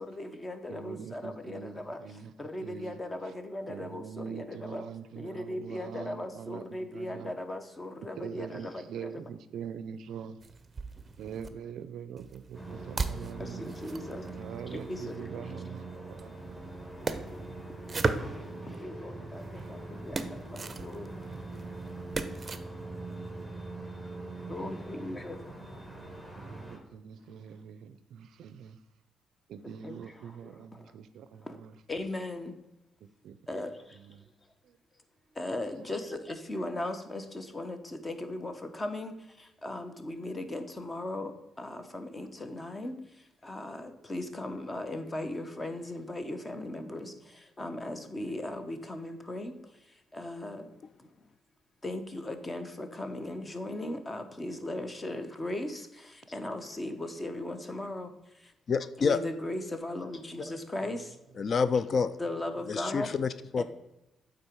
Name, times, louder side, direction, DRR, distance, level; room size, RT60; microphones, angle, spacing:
voice 1, 0.0-4.8 5.2-9.1 13.4-14.3 14.7-15.6 16.6-17.5 17.9-18.3 18.6-21.2 24.5-25.4 29.8-30.9 31.4-31.6 31.9-32.5 33.5-34.0 35.3-49.5 49.8-50.7 51.0-51.1 51.8-58.5 59.0-61.2 62.2-63.1 63.6-63.7, left 1 dB, 25° left, 8 dB, 0.9 m, -38 dB
voice 2, 0.7-2.3 2.6-3.0 3.7-7.3 8.2-10.4 11.2-13.7 14.3-16.7 19.5-20.0 21.2-21.6 26.4-28.8 29.5-31.7 33.0-33.7 33.9-34.3 34.7-34.8 35.7-35.9 60.9-61.1, right 7 dB, 75° right, 14 dB, 0.4 m, -44 dB
sound 1, 10.4-11.5 12.2-15.2 16.1-18.8 19.3-22.6, right 4 dB, 30° right, 0.6 m, -38 dB
sound 2, 12.5-26.8, right 2 dB, 5° left, 1.8 m, -43 dB
voice 3, 58.7-59.2 61.4-62.2 62.7-63.6, left 5 dB, 50° left, 14 dB, 0.3 m, -28 dB
8.8 x 3.8 x 4.5 m, 0.92 s
cardioid pair, 90°, 0 cm